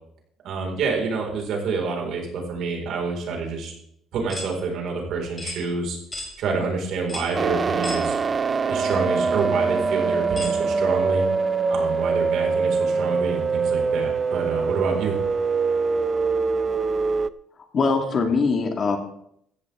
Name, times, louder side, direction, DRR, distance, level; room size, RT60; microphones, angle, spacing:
voice 1, 0.4-3.7 4.1-6.0 6.4-8.2 8.7-11.3 11.7-15.2, right 4 dB, 60° right, 1 dB, 4.4 m, -27 dB
sound 1, 4.3-4.5 5.4-5.6 6.1-6.3 7.1-7.3 7.8-8.0 8.9-9.0 10.4-10.6, left 2 dB, 15° left, 4.0 m, -34 dB
sound 2, 7.3-17.3, right 5 dB, 25° right, 0.4 m, -23 dB
voice 2, 17.7-19.0, left 4 dB, 30° left, 5 dB, 1.7 m, -22 dB
15.5 x 15.0 x 3.5 m, 0.72 s
cardioid pair, 155°, 0 cm